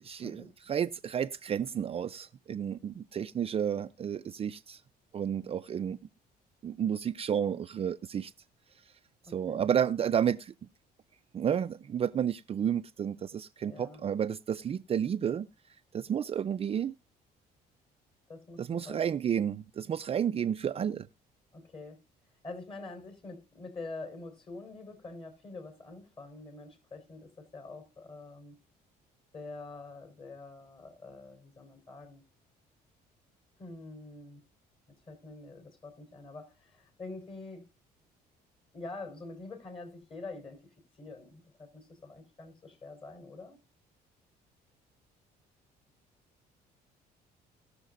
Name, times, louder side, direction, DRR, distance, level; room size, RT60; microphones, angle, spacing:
voice 1, 0.0-4.8 5.1-6.0 6.6-8.3 9.3-10.5 11.3-15.5 15.9-16.9 18.6-21.1, right 8 dB, 35° right, 0.5 m, -31 dB
voice 2, 9.2-9.8 13.7-14.1 18.3-19.0 21.5-22.0 22.4-28.6 29.3-32.2 33.6-34.4 35.1-37.7 38.7-40.7 41.0-43.6, left 3 dB, 30° left, 4.2 m, -46 dB
19.0 x 6.7 x 2.5 m
cardioid pair, 110°, 17 cm